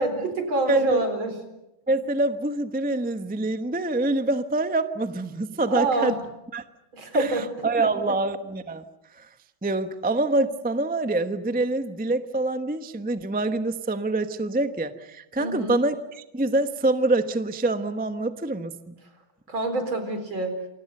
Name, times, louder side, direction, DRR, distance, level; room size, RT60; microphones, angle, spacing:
voice 1, 0.0-1.4 5.6-6.2 6.9-7.4 15.4-15.8 19.5-20.5, right 2 dB, 70° right, 7 dB, 5.0 m, -27 dB
voice 2, 0.7-1.0 1.9-6.1 6.5-6.6 7.1-8.8 9.1-9.3 9.6-18.9, right 2 dB, 10° right, 9 dB, 0.6 m, -25 dB
28.0 x 25.0 x 6.7 m, 0.92 s
omnidirectional pair, 2.2 m